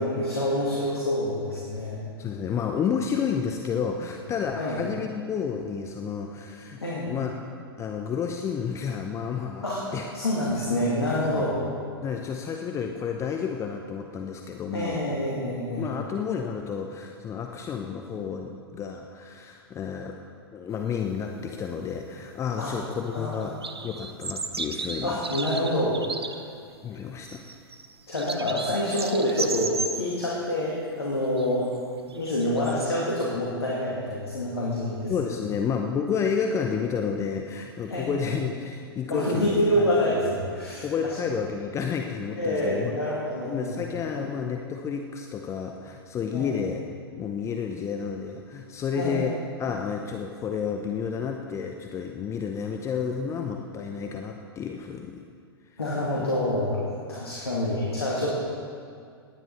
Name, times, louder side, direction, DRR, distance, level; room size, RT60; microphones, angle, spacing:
voice 1, 0.0-2.0 4.6-4.8 6.8-7.2 9.6-9.8 10.1-11.6 14.7-15.9 22.6-22.7 23.1-23.4 25.0-26.4 28.1-31.7 32.0-35.1 37.9-38.3 39.1-40.9 42.4-43.8 44.1-44.3 46.3-46.5 48.9-49.2 55.8-56.8 57.1-58.4, left 1 dB, 80° left, -5 dB, 2.5 m, -27 dB
voice 2, 2.2-6.8 7.1-7.3 7.8-10.1 11.3-11.5 12.0-15.0 15.8-20.2 20.5-23.5 23.8-25.2 26.8-27.5 35.1-39.9 40.8-42.9 43.5-46.8 47.2-55.2 56.2-56.3, left 6 dB, 20° left, 3 dB, 0.7 m, -31 dB
sound 1, 22.8-23.2 23.4-26.4 27.2-30.1 31.4-31.8 32.1-32.9, right 4 dB, 80° right, 0.8 m, -34 dB
18.0 x 10.5 x 4.2 m, 2.2 s
figure-of-eight pair, 100°, 13 cm